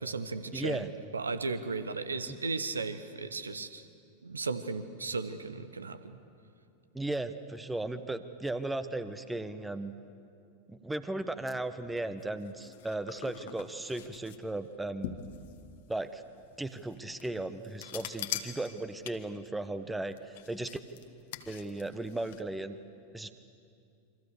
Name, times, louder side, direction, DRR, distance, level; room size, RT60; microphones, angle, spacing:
voice 1, 0.0-3.9 4.2-6.2, right 4 dB, 75° right, 12 dB, 1.2 m, -36 dB
voice 2, 0.5-0.9 2.3-2.4 6.9-9.9 10.7-15.2 15.9-16.2 16.6-20.8 21.5-22.8 23.1-23.4, right 2 dB, 5° right, 11 dB, 1.1 m, -36 dB
sound 1, 11.8-22.4, left 11 dB, 55° left, 1.5 m, -45 dB
28.0 x 25.0 x 6.9 m, 2.5 s
figure-of-eight pair, 90°, 0 cm